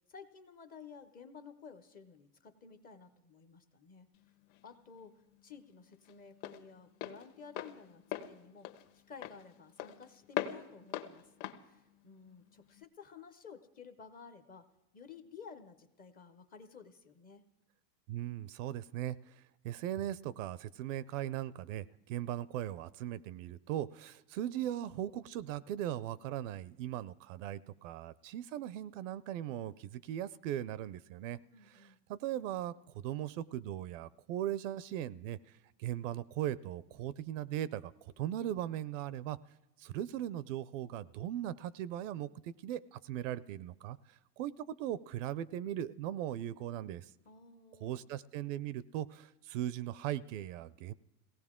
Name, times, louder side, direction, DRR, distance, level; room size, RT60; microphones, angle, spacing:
voice 1, 0.1-4.1 4.6-14.7 14.9-17.4 31.5-32.0 47.3-48.1, left 6 dB, 20° left, 8 dB, 0.5 m, -53 dB
Walk footsteps, 4.1-12.8, left 12 dB, 55° left, 1.3 m, -43 dB
voice 2, 18.1-31.4 31.7-35.4 35.8-39.4 39.8-47.1 47.8-50.9, right 12 dB, 50° right, 19 dB, 0.5 m, -39 dB
22.5 x 17.5 x 3.6 m, 0.97 s
supercardioid pair, 150°, 49 cm